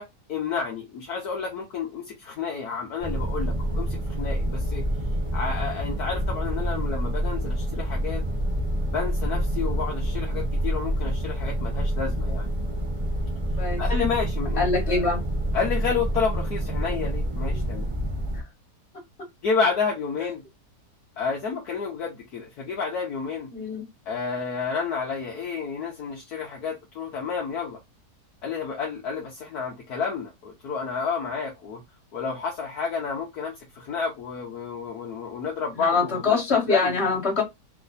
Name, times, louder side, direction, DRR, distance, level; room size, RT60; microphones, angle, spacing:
voice 1, 0.0-4.8 5.3-8.2 8.9-12.5 13.8-15.1 15.5-17.9 19.4-20.4 21.2-23.5 24.1-27.8 28.4-31.8 32.1-36.4 36.7-36.9, left 5 dB, 65° left, 1.4 m, -30 dB
sound 1, 3.0-18.4, right 1 dB, 25° right, 0.7 m, -27 dB
voice 2, 14.6-15.2 20.2-20.3 23.5-23.9 35.7-37.4, left 4 dB, 40° left, 2.2 m, -24 dB
4.4 x 2.7 x 3.9 m
omnidirectional pair, 1.8 m